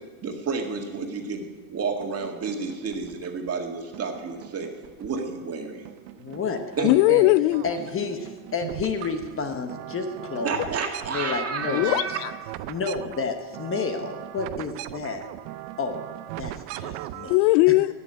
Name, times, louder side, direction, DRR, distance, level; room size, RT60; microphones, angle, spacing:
voice 1, 0.2-1.4 1.7-4.7 5.0-5.9 6.8-6.9 10.4-12.2, right 5 dB, 30° right, 3 dB, 2.0 m, -30 dB
sound 1, 2.0-3.5 3.9-5.5 5.8-7.1 7.4-17.4, right 15 dB, 75° right, 0.8 m, -40 dB
voice 2, 6.2-7.3 7.6-10.8 11.1-12.0 12.7-15.3 15.8-16.0 16.3-17.4, left 4 dB, 25° left, 6 dB, 1.2 m, -30 dB
voice 3, 6.8-7.6 10.6-10.7 11.7-12.3 17.3-17.9, left 18 dB, 70° left, 20 dB, 0.6 m, -19 dB
17.0 x 7.0 x 9.8 m, 1.4 s
supercardioid pair, 125°, 50 cm